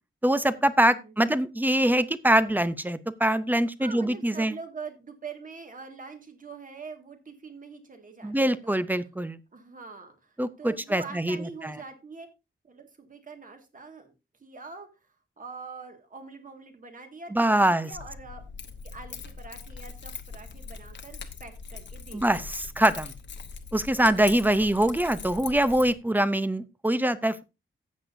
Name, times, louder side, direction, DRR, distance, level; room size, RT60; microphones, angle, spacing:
voice 1, 0.2-4.5 8.2-9.4 10.4-11.8 17.3-17.9 22.1-23.1 23.7-27.4, right 1 dB, 10° right, 14 dB, 0.6 m, -24 dB
voice 2, 3.8-8.8 9.5-12.3 12.6-14.1 14.4-14.9 15.4-18.4 18.9-22.5 24.0-24.7, right 4 dB, 40° right, 5 dB, 1.9 m, -44 dB
Keys jangling, 17.9-25.9, left 5 dB, 60° left, 1.1 m, -41 dB
13.5 x 8.2 x 2.6 m, 0.27 s
wide cardioid pair, 160°, 21 cm